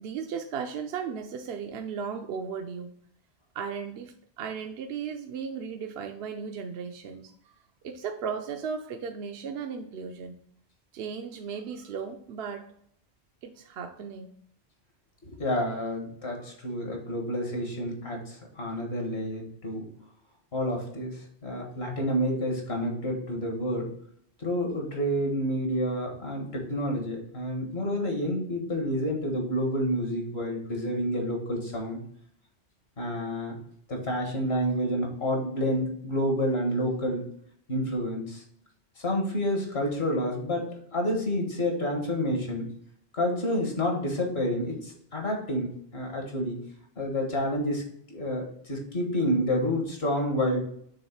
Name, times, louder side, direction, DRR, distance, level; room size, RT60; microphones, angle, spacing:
voice 1, 0.0-2.9 3.5-7.3 7.8-10.4 10.9-12.7 13.4-14.4 16.3-16.5, right 6 dB, 70° right, 5 dB, 0.8 m, -36 dB
voice 2, 15.2-19.8 20.5-23.9 24.4-32.0 33.0-33.6 33.9-37.3 37.7-38.4 39.0-42.7 43.1-46.6 47.0-47.8 48.1-50.6, equal, 70° left, 1 dB, 1.9 m, -29 dB
6.3 x 3.6 x 4.5 m, 0.67 s
omnidirectional pair, 1.1 m